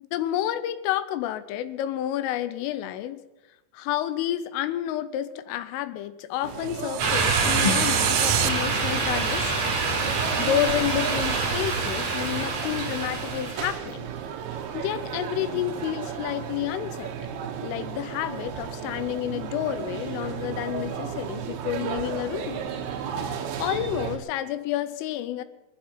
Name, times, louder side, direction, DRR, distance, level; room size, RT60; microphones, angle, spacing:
voice 1, 0.0-3.2 3.7-9.6 10.4-14.2 14.7-17.4 17.6-22.6 23.6-25.4, left 12 dB, 85° left, 12 dB, 3.2 m, -30 dB
sound 1, 6.4-24.2, right 8 dB, 70° right, 2.5 m, -34 dB
sound 2, 6.7-8.5, right 16 dB, 90° right, 3.4 m, -28 dB
sound 3, 7.0-13.8, right 3 dB, 55° right, 4.7 m, -26 dB
21.5 x 13.0 x 4.3 m, 1.0 s
omnidirectional pair, 5.9 m